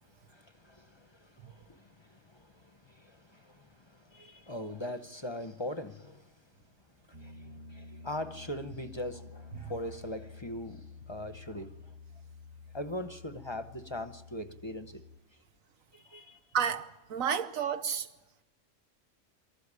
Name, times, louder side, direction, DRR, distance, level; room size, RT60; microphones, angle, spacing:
voice 1, 0.0-11.9 12.7-15.4 15.9-16.5, left 1 dB, 25° left, 0.7 m, -42 dB
Piano, 7.1-15.2, left 4 dB, 50° right, 1.4 m, -50 dB
voice 2, 16.5-18.1, right 7 dB, 85° right, 1.4 m, -31 dB
24.0 x 14.0 x 9.8 m
omnidirectional pair, 1.4 m